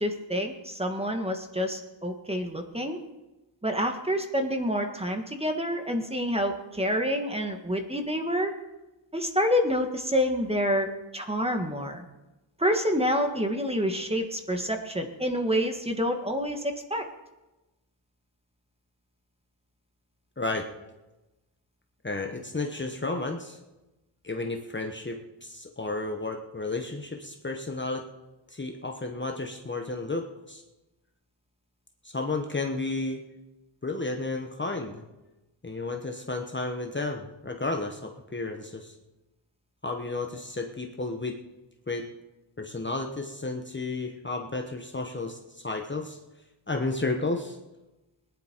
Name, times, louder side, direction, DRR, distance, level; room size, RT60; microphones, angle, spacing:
voice 1, 0.0-3.0 3.6-8.5 9.1-10.9 11.1-12.0 12.6-17.0, equal, 10° right, 4 dB, 1.7 m, -28 dB
voice 2, 20.4-20.7 22.0-23.6 24.2-28.0 28.5-30.6 32.0-33.2 33.8-35.0 35.6-38.9 39.8-41.4 41.9-42.1 42.6-46.2 46.7-47.6, left 3 dB, 25° left, 3 dB, 1.2 m, -32 dB
20.0 x 10.5 x 4.6 m, 1.0 s
wide cardioid pair, 90°, 48 cm